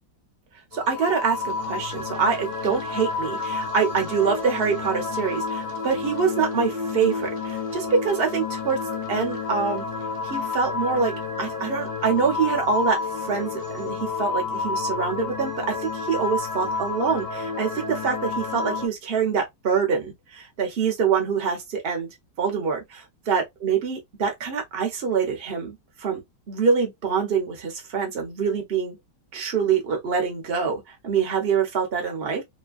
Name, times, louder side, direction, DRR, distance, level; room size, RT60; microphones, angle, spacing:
sound 1, 0.7-18.9, left 4 dB, 60° left, 1.3 m, -30 dB
voice 1, 0.7-8.8 9.1-9.8 10.2-11.1 11.4-22.1 22.4-26.2 26.5-29.0 29.3-32.4, right 6 dB, 45° right, 0.9 m, -25 dB
3.1 x 2.2 x 2.4 m
omnidirectional pair, 2.0 m